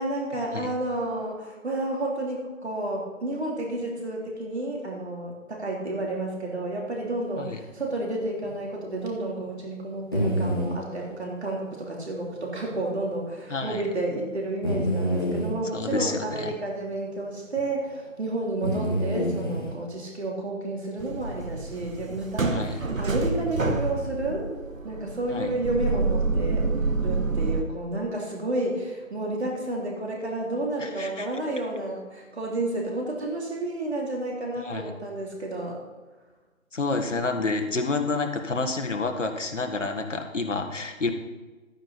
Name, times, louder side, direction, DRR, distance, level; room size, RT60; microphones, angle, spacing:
voice 1, 0.0-24.5 24.8-26.7 27.0-35.8, right 2 dB, 50° right, -2 dB, 3.5 m, -31 dB
sound 1, 8.4-8.5 9.0-9.1 10.1-10.7 12.7-12.8 13.1-13.2 14.6-15.5 17.6-17.7 18.6-19.7, equal, 15° left, 1.1 m, -27 dB
voice 2, 13.5-13.8 15.7-16.5 22.4-22.7 25.3-25.5 30.8-31.3 34.6-34.9 36.7-41.1, left 3 dB, 60° left, 4 dB, 1.7 m, -29 dB
sound 2, 21.0-27.6, right 3 dB, 75° right, 1.4 m, -28 dB
13.0 x 9.7 x 4.2 m, 1.2 s
figure-of-eight pair, 170°, 40 cm